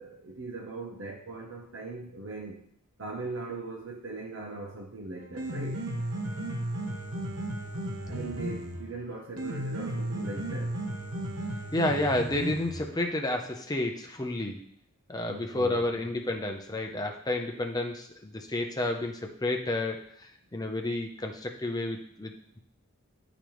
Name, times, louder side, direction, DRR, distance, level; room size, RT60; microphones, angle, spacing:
voice 1, 0.0-2.6 3.0-5.8 8.1-10.8 15.3-15.8, right 3 dB, 55° right, -1 dB, 0.8 m, -39 dB
Piano, 5.2-13.2, right 1 dB, 85° right, 1.2 m, -34 dB
voice 2, 11.7-14.6 15.1-22.6, left 1 dB, 15° left, 3 dB, 0.6 m, -31 dB
8.7 x 5.1 x 3.1 m, 0.67 s
head